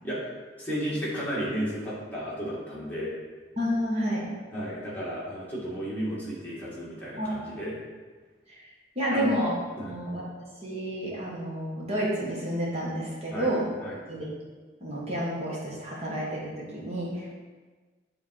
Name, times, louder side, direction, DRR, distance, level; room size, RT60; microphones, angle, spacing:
voice 1, 0.6-3.1 4.5-7.7 9.1-9.3 9.8-10.0 13.3-13.5 13.8-14.0, equal, 10° left, -8 dB, 1.9 m, -33 dB
voice 2, 3.6-4.3 7.2-7.4 8.9-9.5 9.8-10.2 10.6-13.7 14.1-14.3 14.8-17.3, equal, 35° right, -5 dB, 1.6 m, -30 dB
8.2 x 3.6 x 4.7 m, 1.4 s
head